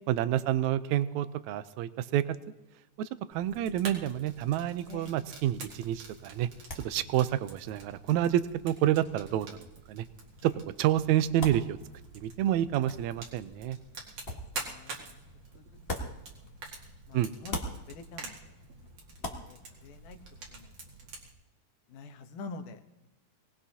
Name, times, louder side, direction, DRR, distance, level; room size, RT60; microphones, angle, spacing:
voice 1, 0.1-2.4 3.0-6.5 6.8-10.1 10.4-10.5 10.8-11.8 12.2-13.8 17.1-17.3, right 12 dB, 75° right, 13 dB, 1.8 m, -28 dB
Fire, 3.3-21.3, right 3 dB, 55° right, 2.9 m, -47 dB
sound 1, 5.8-17.0 17.3-20.7, left 1 dB, 35° left, 0.9 m, -45 dB
voice 2, 14.3-15.0 15.5-15.6 15.9-16.1 17.1-17.6 17.9-18.4 19.2-19.6 19.8-20.2 20.5-20.7 21.9-22.8, left 3 dB, 90° left, 6 dB, 2.6 m, -45 dB
23.0 x 18.5 x 2.8 m, 1.0 s
omnidirectional pair, 3.6 m